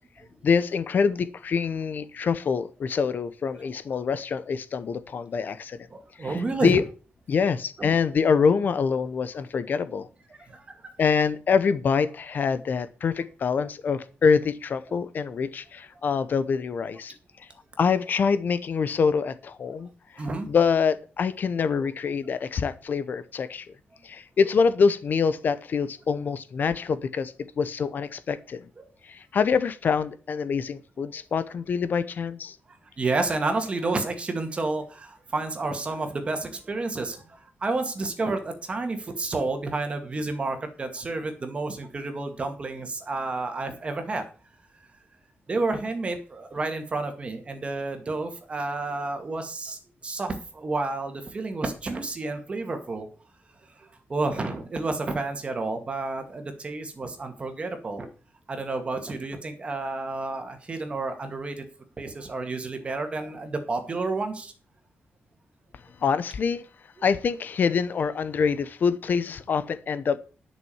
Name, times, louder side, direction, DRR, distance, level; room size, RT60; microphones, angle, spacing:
voice 1, 0.4-5.8 6.2-6.8 7.3-10.1 11.0-17.1 17.4-17.5 17.8-19.9 20.1-23.7 24.0-28.6 29.0-32.6 66.0-66.6 67.0-70.2, left 6 dB, 50° left, 13 dB, 0.8 m, -25 dB
voice 2, 5.9-6.8 7.8-8.0 10.5-10.9 20.2-20.5 21.7-21.8 28.8-28.9 33.0-44.2 45.5-53.1 53.8-58.1 58.5-61.6 62.0-64.5, right 3 dB, 30° right, 6 dB, 2.1 m, -30 dB
11.0 x 6.3 x 7.1 m, 0.37 s
wide cardioid pair, 180°, 4 cm